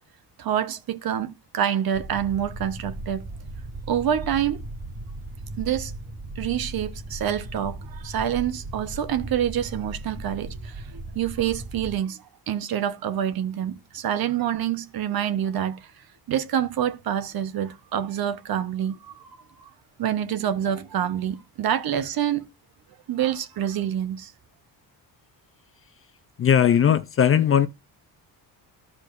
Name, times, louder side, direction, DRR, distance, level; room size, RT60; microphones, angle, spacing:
voice 1, 0.4-3.3 3.9-4.6 5.6-5.9 6.4-15.9 16.3-19.3 19.6-19.7 20.0-22.5 23.1-24.3, right 10 dB, 60° right, 1.0 m, -27 dB
sound 1, 1.9-11.9, right 2 dB, 30° right, 2.1 m, -37 dB
voice 2, 26.4-27.7, left 9 dB, 35° left, 0.5 m, -18 dB
14.5 x 4.9 x 2.6 m
cardioid pair, 165°, 40 cm